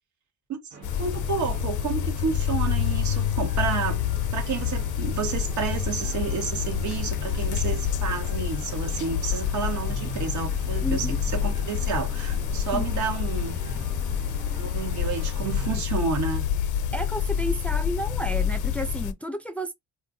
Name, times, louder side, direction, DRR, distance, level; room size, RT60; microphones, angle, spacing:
sound 1, 0.7-15.8, right 4 dB, 90° right, 1.3 m, -43 dB
sound 2, 0.8-19.1, left 8 dB, 80° left, 0.6 m, -27 dB
voice 1, 0.9-4.0 4.3-11.1 11.3-13.6 14.6-16.5, right 6 dB, 70° right, 1.5 m, -30 dB
voice 2, 10.8-11.2 12.7-12.9 16.9-19.7, equal, 5° left, 0.5 m, -31 dB
3.8 x 2.6 x 2.6 m
cardioid pair, 90°, 30 cm